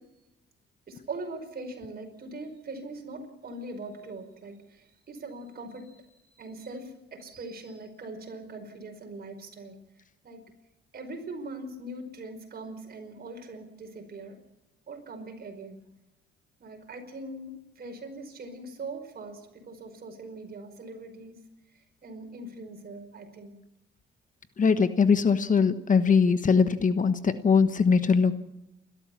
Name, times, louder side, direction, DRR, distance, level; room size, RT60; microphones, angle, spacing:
voice 1, 0.9-6.0 6.3-9.8 10.2-10.4 10.9-14.4 14.9-15.8 16.6-19.4 19.7-21.4 21.7-23.5, right 2 dB, 50° right, 4 dB, 5.2 m, -41 dB
voice 2, 24.6-28.3, left 5 dB, 40° left, 12 dB, 1.2 m, -21 dB
29.0 x 13.0 x 7.3 m, 0.93 s
cardioid pair, 90°, 20 cm